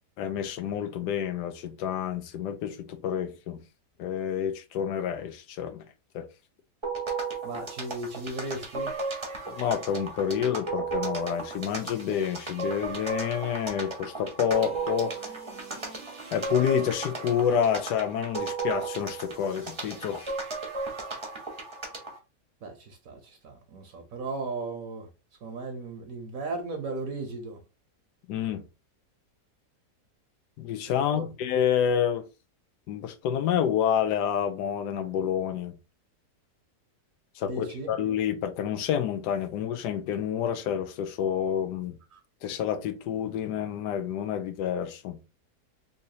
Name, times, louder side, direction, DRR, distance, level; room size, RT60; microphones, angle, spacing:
voice 1, 0.2-3.6 4.0-5.9 6.1-6.3 9.5-15.3 16.3-20.3 28.3-28.7 30.6-32.3 32.9-35.8 37.4-42.0 42.4-45.2, left 8 dB, 90° left, 1.2 m, -28 dB
sound 1, 6.8-22.2, right 4 dB, 25° right, 0.7 m, -35 dB
voice 2, 7.4-9.0 22.6-25.1 25.4-27.6 30.9-31.3 37.4-37.9 42.1-42.2, right 2 dB, 65° right, 1.1 m, -36 dB
3.9 x 2.8 x 2.7 m
omnidirectional pair, 1.7 m